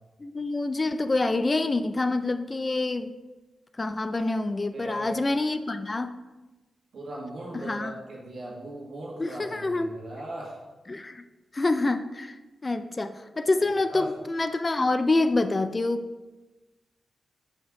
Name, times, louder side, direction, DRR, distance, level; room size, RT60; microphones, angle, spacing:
voice 1, 0.2-3.1 3.8-6.2 7.6-7.9 9.2-10.0 10.9-11.2 11.5-12.3 12.6-16.0, left 2 dB, 30° left, 10 dB, 0.3 m, -26 dB
voice 2, 4.7-5.2 6.9-10.6 13.5-13.6 13.9-14.1, right 1 dB, 70° right, -4 dB, 1.9 m, -39 dB
5.5 x 5.4 x 3.8 m, 1.1 s
wide cardioid pair, 95°, 0 cm